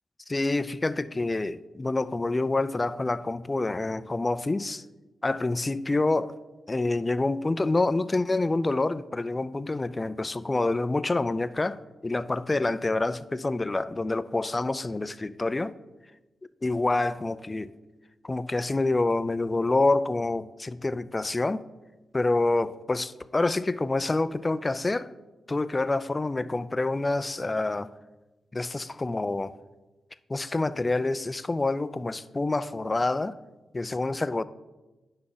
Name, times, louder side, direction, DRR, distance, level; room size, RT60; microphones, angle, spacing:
voice 1, 0.3-4.8 5.2-6.3 6.7-15.7 16.6-17.7 18.2-21.6 22.1-25.1 25.5-27.9 28.5-29.5 30.3-33.4 33.7-34.4, left 2 dB, 30° left, 0.4 m, -27 dB
9.6 x 6.0 x 4.0 m
supercardioid pair, 45°, 0 cm